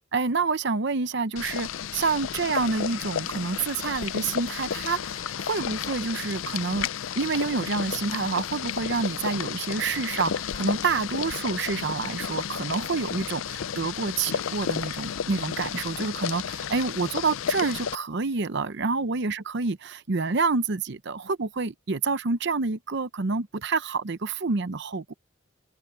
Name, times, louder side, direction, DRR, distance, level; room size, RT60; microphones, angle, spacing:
voice 1, 0.1-6.9 7.2-25.1, right 4 dB, 55° right, 0.7 m, -28 dB
Boiling, 1.4-18.0, left 8 dB, 70° left, 0.4 m, -32 dB
open air
head